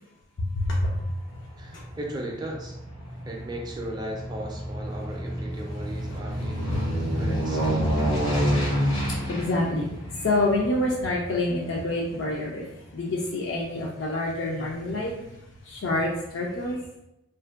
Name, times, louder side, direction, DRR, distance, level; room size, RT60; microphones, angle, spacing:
voice 1, 0.4-1.2 1.7-1.9 6.7-7.2 7.6-8.0 9.1-9.9 10.1-16.9, left 2 dB, 70° left, -2 dB, 0.4 m, -28 dB
Aircraft, 0.8-13.3 13.7-13.8, equal, 85° left, 1.1 m, -30 dB
voice 2, 1.6-2.8 3.3-6.8 7.1-8.4, right 1 dB, 20° right, 0 dB, 0.3 m, -37 dB
2.5 x 2.1 x 2.4 m, 0.85 s
head